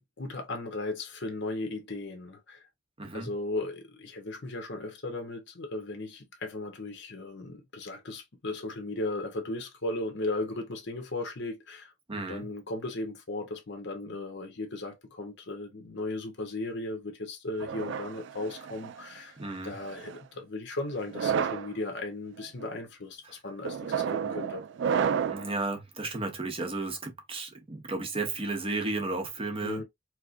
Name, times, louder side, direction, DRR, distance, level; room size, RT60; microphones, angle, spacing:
voice 1, 0.0-2.6 3.1-11.9 12.3-19.4 19.6-24.6 29.6-29.8, left 2 dB, 65° left, 1.1 m, -36 dB
voice 2, 3.0-3.3 12.1-12.4 19.4-19.7 25.2-29.8, right 3 dB, 30° right, 0.8 m, -33 dB
sound 1, 17.6-19.0 19.8-20.2 21.0-21.7 22.4-22.7 23.6-25.5, right 7 dB, 65° right, 0.3 m, -31 dB
4.5 x 2.1 x 2.6 m
head